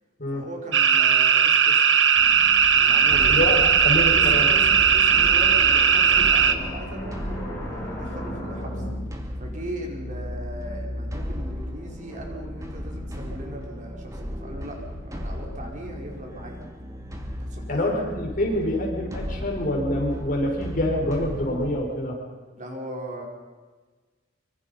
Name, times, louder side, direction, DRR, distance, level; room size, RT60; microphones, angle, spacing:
voice 1, 0.3-1.8 2.7-3.4 4.1-8.9 9.4-16.6 17.4-18.0 22.5-23.2, right 1 dB, 40° right, 0 dB, 4.8 m, -38 dB
sound 1, 0.7-6.5, right 7 dB, 70° right, 1.5 m, -18 dB
sound 2, 2.2-21.8, equal, 15° right, 2.6 m, -35 dB
voice 2, 3.3-4.4 17.7-22.2, left 1 dB, 45° left, 0 dB, 6.2 m, -26 dB
sound 3, 4.0-9.0, equal, 20° left, 6.1 m, -38 dB
25.0 x 25.0 x 5.7 m, 1.3 s
head